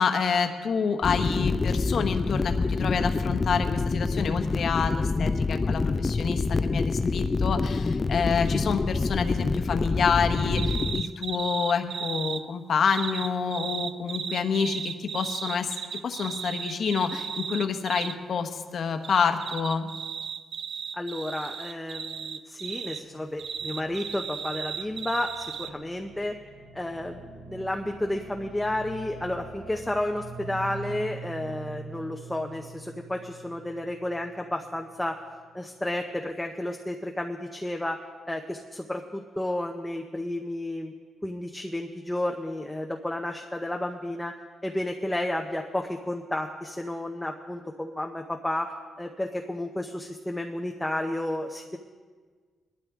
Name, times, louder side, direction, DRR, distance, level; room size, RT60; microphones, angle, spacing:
voice 1, 0.0-15.7 16.0-19.9, left 6 dB, 55° left, 6 dB, 1.1 m, -28 dB
sound 1, 1.0-11.0, left 3 dB, 25° left, 0.3 m, -26 dB
sound 2, 10.6-12.4 12.9-18.2 19.0-23.0 23.4-25.7, right 7 dB, 65° right, 0.5 m, -35 dB
voice 2, 20.9-26.3 26.7-35.2 35.5-38.0 38.3-40.9 41.2-44.3 44.6-48.7 49.0-51.8, left 1 dB, 5° left, 2 dB, 0.7 m, -32 dB
sound 3, 23.0-35.2, right 3 dB, 90° right, 2.3 m, -44 dB
20.0 x 12.5 x 3.6 m, 1.5 s
cardioid pair, 125°, 0 cm